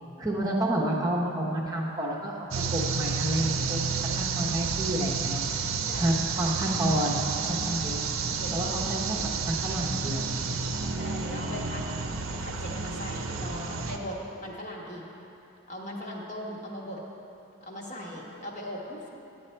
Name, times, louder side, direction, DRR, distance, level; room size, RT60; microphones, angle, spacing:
voice 1, 0.2-5.4 6.0-8.0 8.5-10.3, right 1 dB, 15° right, -4 dB, 0.8 m, -30 dB
sound 1, 2.5-14.0, right 5 dB, 80° right, 0.6 m, -30 dB
voice 2, 8.4-8.7 11.0-11.8 12.4-14.1 14.4-15.1 15.7-17.0 17.6-19.0, equal, 35° left, -2 dB, 1.2 m, -39 dB
10.5 x 8.3 x 4.4 m, 2.9 s
head